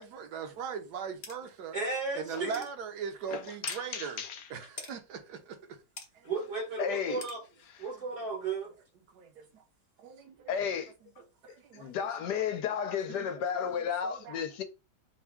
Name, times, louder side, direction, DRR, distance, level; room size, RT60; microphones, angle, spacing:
voice 1, 0.0-1.8 2.1-4.2 4.5-5.6 6.1-6.3 9.1-9.6 10.0-10.2 11.2-12.3 13.1-14.4, right 6 dB, 65° right, 1.4 m, -40 dB
sound 1, 1.2-1.4 1.9-2.0 2.5-2.7 3.7-3.8 4.8-4.9 6.0-6.1 7.2-7.4, left 3 dB, 45° left, 0.7 m, -41 dB
voice 2, 1.7-2.6 6.2-7.4 7.8-8.7, right 4 dB, 90° right, 3.5 m, -34 dB
voice 3, 3.3-4.4 6.8-7.2 10.5-10.9 11.7-14.6, left 7 dB, 70° left, 1.2 m, -33 dB
5.9 x 2.2 x 3.5 m
omnidirectional pair, 2.0 m